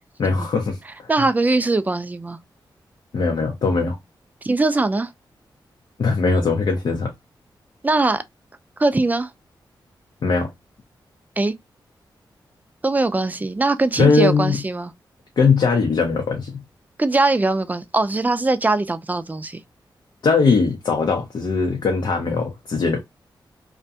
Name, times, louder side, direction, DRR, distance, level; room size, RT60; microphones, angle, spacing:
voice 1, 0.2-1.1 3.1-4.0 6.0-7.1 10.2-10.5 14.0-14.6 15.4-16.6 20.2-23.0, left 4 dB, 65° left, 0.6 m, -20 dB
voice 2, 1.1-2.4 4.4-5.1 7.8-8.2 8.8-9.3 11.4-11.5 12.8-14.9 17.0-19.6, right 2 dB, 20° right, 0.4 m, -21 dB
2.4 x 2.2 x 2.7 m
cardioid pair, 65°, 8 cm